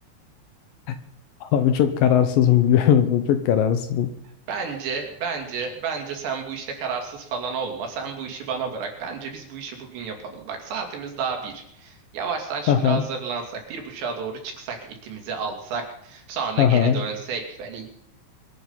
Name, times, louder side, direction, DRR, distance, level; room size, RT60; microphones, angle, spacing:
voice 1, 1.4-4.1 12.7-13.0 16.6-17.0, left 9 dB, 70° left, 10 dB, 2.2 m, -19 dB
voice 2, 4.5-17.9, right 5 dB, 70° right, 2 dB, 5.0 m, -31 dB
24.5 x 9.4 x 5.6 m, 0.73 s
omnidirectional pair, 5.3 m